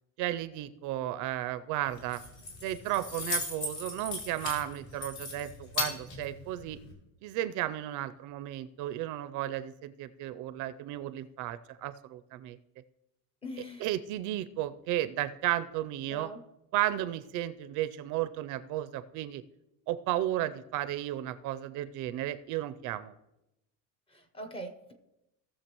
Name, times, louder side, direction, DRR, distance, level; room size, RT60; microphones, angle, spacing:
voice 1, 0.2-2.2 2.6-6.8 7.2-12.6 13.8-16.3 16.7-19.4 19.9-23.1, right 13 dB, 55° right, 12 dB, 0.4 m, -34 dB
Keys jangling, 1.9-6.9, left 3 dB, 45° left, 3.0 m, -38 dB
voice 2, 13.4-13.9 16.1-16.4 24.1-24.9, equal, 15° left, 6 dB, 0.6 m, -42 dB
18.0 x 6.7 x 3.0 m, 0.92 s
cardioid pair, 175°, 38 cm